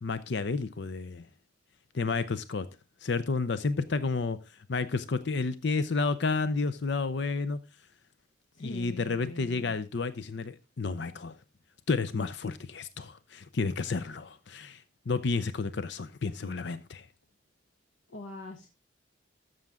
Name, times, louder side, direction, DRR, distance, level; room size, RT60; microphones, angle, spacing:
voice 1, 0.0-1.3 1.9-2.7 3.0-4.4 4.7-7.6 8.6-11.4 11.9-17.1, left 4 dB, 60° left, 0.6 m, -31 dB
voice 2, 8.5-9.8 14.0-14.2 18.1-18.7, left 3 dB, 80° left, 1.3 m, -43 dB
13.0 x 6.6 x 3.6 m
head